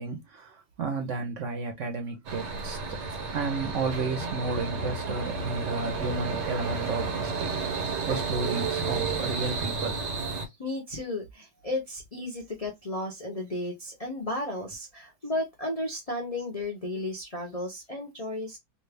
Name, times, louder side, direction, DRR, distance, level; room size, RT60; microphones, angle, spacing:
voice 1, 0.0-3.0 3.3-7.6 8.1-10.0, right 4 dB, 60° right, 0.9 m, -32 dB
sound 1, 2.3-10.5, right 4 dB, 90° right, 1.6 m, -31 dB
voice 2, 10.6-18.6, left 1 dB, 45° left, 0.4 m, -34 dB
3.1 x 2.4 x 3.3 m
omnidirectional pair, 1.8 m